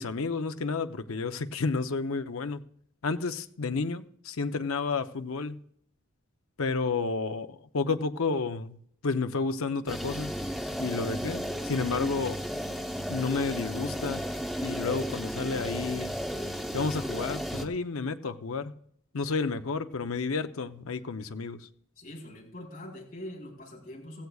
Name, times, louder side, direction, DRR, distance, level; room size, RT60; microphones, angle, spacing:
voice 1, 0.0-2.6 3.0-5.6 6.6-10.3 10.8-12.4 13.1-14.2 14.6-16.2 16.7-18.7 19.1-21.7, left 4 dB, 80° left, 0.7 m, -31 dB
sound 1, 9.9-17.7, equal, ahead, 0.8 m, -34 dB
voice 2, 22.0-24.3, left 1 dB, 45° left, 4.0 m, -43 dB
16.0 x 15.5 x 2.4 m
head